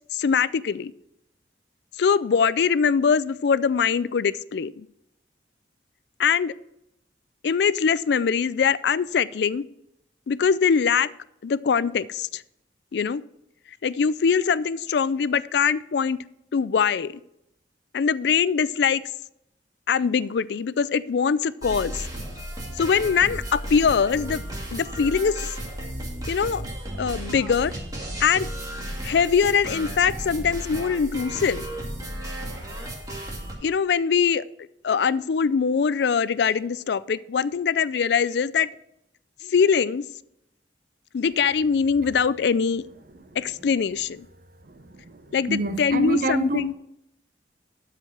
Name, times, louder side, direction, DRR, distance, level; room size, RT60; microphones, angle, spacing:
voice 1, 0.1-0.9 2.0-4.9 6.2-6.5 7.4-9.6 10.3-11.1 11.4-12.4 12.9-13.2 13.8-16.2 16.5-17.1 17.9-19.0 19.9-22.0 22.8-24.4 24.7-25.5 26.3-26.6 27.0-27.7 28.2-28.5 29.0-31.7 33.6-34.4 34.8-38.7 39.4-40.0 41.1-42.8 43.4-44.3 45.3-46.7, left 6 dB, 65° left, 18 dB, 0.4 m, -22 dB
sound 1, 21.6-33.5, right 1 dB, 20° right, 2.1 m, -34 dB
voice 2, 44.7-46.7, right 3 dB, 50° right, 8 dB, 0.8 m, -28 dB
12.5 x 5.0 x 5.8 m, 0.82 s
head